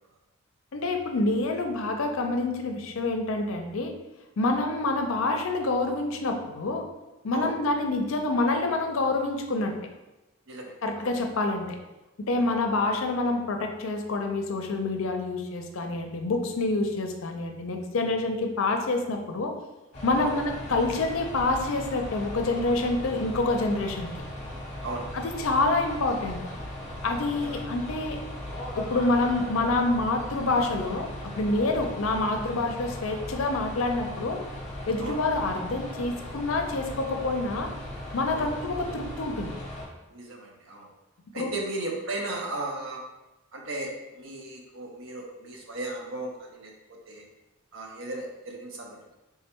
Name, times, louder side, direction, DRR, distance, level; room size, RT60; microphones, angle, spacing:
voice 1, 0.7-3.9 4.4-6.9 7.2-9.7 10.8-11.8 12.3-19.5 20.0-24.1 25.1-26.4 27.0-28.2 28.7-34.4 34.9-37.7 38.1-39.5 41.4-41.5, left 2 dB, 75° left, 4 dB, 0.5 m, -27 dB
voice 2, 10.5-11.1 12.4-12.5 20.2-20.4 24.8-25.2 27.4-27.6 35.0-35.2 38.3-38.5 40.1-40.9 41.3-43.0 43.5-47.3 47.7-49.0, right 2 dB, 65° right, 0 dB, 0.7 m, -36 dB
sound 1, 19.9-39.8, left 1 dB, 35° left, 1.0 m, -38 dB
3.4 x 2.2 x 4.4 m, 1.0 s
head